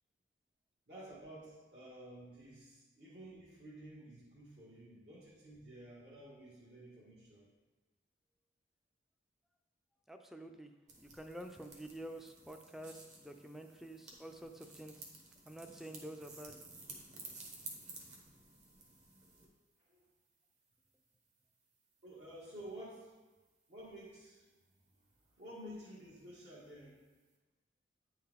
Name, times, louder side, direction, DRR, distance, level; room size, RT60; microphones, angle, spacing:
voice 1, 0.9-7.5 19.8-20.1 22.0-23.1 23.7-24.5 24.9-25.0 25.2-27.1, right 1 dB, 65° right, -10 dB, 1.7 m, -52 dB
voice 2, 10.1-10.7 11.0-16.6, right 1 dB, ahead, 5 dB, 0.4 m, -49 dB
sound 1, 10.9-19.5, right 3 dB, 45° right, 1.2 m, -53 dB
9.2 x 4.6 x 3.5 m, 1.2 s
head